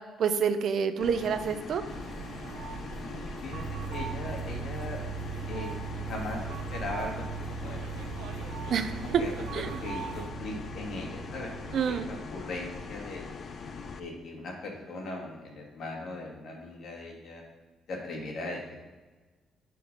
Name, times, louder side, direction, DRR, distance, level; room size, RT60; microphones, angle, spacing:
voice 1, 0.2-1.8 8.7-8.9 9.5-9.8 11.7-12.1, right 7 dB, 65° right, 9 dB, 0.7 m, -28 dB
sound 1, 1.0-14.0, left 5 dB, 50° left, 0.7 m, -42 dB
sound 2, 1.9-10.3, right 5 dB, 85° right, 1.0 m, -42 dB
voice 2, 3.0-3.6 3.9-5.0 5.5-5.7 6.0-7.3 7.6-7.8 8.5-8.6 9.0-13.2 13.9-17.4 17.9-18.9, left 2 dB, 65° left, -1 dB, 2.4 m, -39 dB
sound 3, 3.5-12.2, right 7 dB, 40° right, 1.3 m, -40 dB
11.0 x 4.7 x 5.3 m, 1.3 s
cardioid pair, 90°, 0 cm